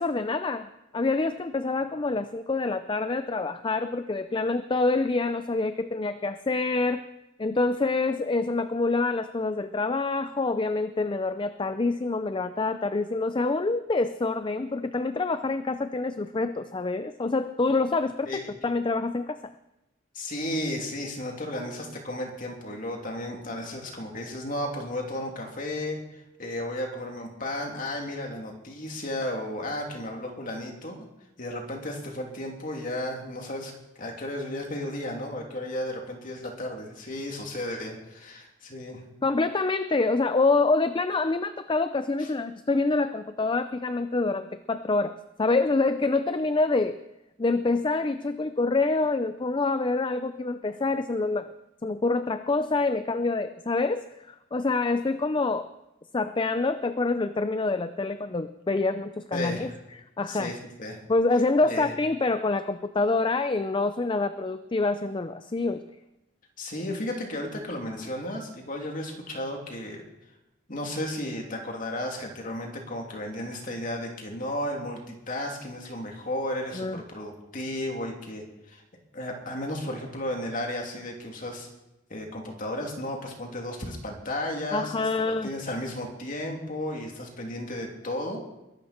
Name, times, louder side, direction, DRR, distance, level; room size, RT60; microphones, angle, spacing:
voice 1, 0.0-7.0 7.4-19.5 39.2-47.0 47.4-51.5 51.8-55.7 56.1-59.7 60.2-60.5 61.1-65.8 76.7-77.0 84.7-85.5, left 3 dB, 25° left, 11 dB, 0.5 m, -26 dB
voice 2, 18.3-18.6 20.1-26.0 26.4-31.0 31.4-39.0 42.2-42.3 59.3-59.7 60.3-61.0 61.6-61.9 66.6-70.1 70.7-78.8 79.1-81.7 82.1-88.6, left 1 dB, 45° left, 1 dB, 3.0 m, -34 dB
22.0 x 11.5 x 4.4 m, 0.93 s
head